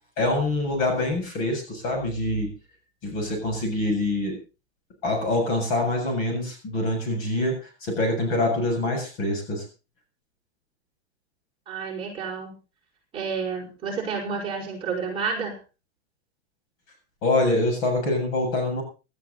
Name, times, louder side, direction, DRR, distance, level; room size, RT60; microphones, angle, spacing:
voice 1, 0.2-2.6 3.0-4.4 5.0-9.7 17.2-18.8, left 2 dB, 40° left, 4 dB, 7.4 m, -25 dB
voice 2, 11.7-12.6 13.1-15.6, right 5 dB, 15° right, -3 dB, 5.6 m, -30 dB
18.5 x 13.0 x 4.1 m, 0.33 s
supercardioid pair, 160°, 34 cm